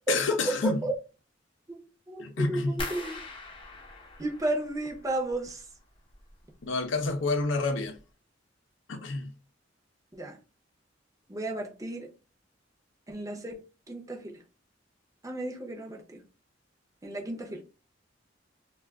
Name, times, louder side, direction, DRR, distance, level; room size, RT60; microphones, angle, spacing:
voice 1, 0.1-0.8 2.2-2.8 6.6-8.0 8.9-9.3, left 3 dB, 80° left, 0.6 m, -28 dB
voice 2, 2.1-3.2 4.2-5.7 10.1-10.4 11.3-12.1 13.1-14.4 15.2-16.2 17.0-17.6, right 2 dB, 20° right, 0.6 m, -33 dB
sound 1, 2.8-5.7 6.0-6.7 7.0-7.4 7.8-8.0, left 2 dB, 30° left, 0.6 m, -42 dB
2.3 x 2.3 x 3.4 m
head